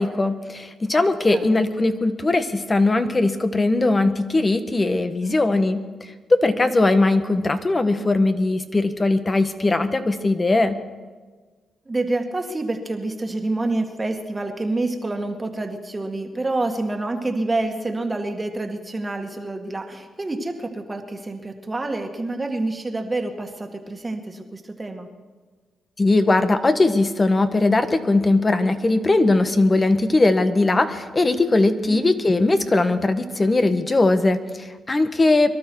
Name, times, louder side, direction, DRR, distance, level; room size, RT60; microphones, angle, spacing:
voice 1, 0.0-10.8 26.0-35.5, left 2 dB, 30° left, 9 dB, 1.4 m, -20 dB
voice 2, 1.3-1.6 5.2-5.5 11.9-25.1 31.9-32.0, right 2 dB, 25° right, 4 dB, 2.0 m, -27 dB
23.0 x 12.5 x 4.7 m, 1.4 s
cardioid pair, 70°, 0 cm